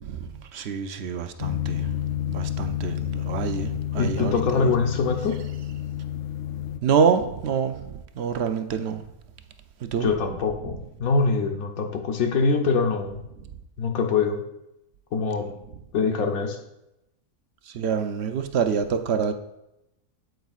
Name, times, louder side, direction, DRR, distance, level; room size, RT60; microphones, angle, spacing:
voice 1, 0.0-2.0 2.3-4.7 6.8-9.0 9.8-10.1 10.6-10.7 15.4-15.5 17.7-19.3, right 6 dB, 60° right, 0.7 m, -26 dB
sound 1, 1.4-6.8, left 11 dB, 70° left, 0.9 m, -30 dB
voice 2, 4.0-5.4 10.0-13.2 13.8-14.4 15.1-15.5 15.9-16.6, left 4 dB, 85° left, 1.3 m, -24 dB
9.1 x 7.9 x 2.4 m
omnidirectional pair, 1.5 m